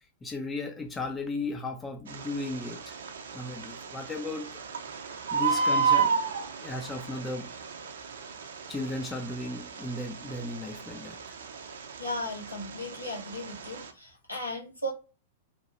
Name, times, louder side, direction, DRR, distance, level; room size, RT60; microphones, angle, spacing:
voice 1, 0.2-2.9 3.3-4.6 5.3-6.2 6.6-7.5 8.7-11.4, left 2 dB, 15° left, 0.4 m, -35 dB
Bird, 2.1-13.9, right 5 dB, 60° right, 0.4 m, -33 dB
voice 2, 12.0-14.9, left 1 dB, 85° left, 0.9 m, -36 dB
2.9 x 2.1 x 2.9 m
figure-of-eight pair, 100°, 0 cm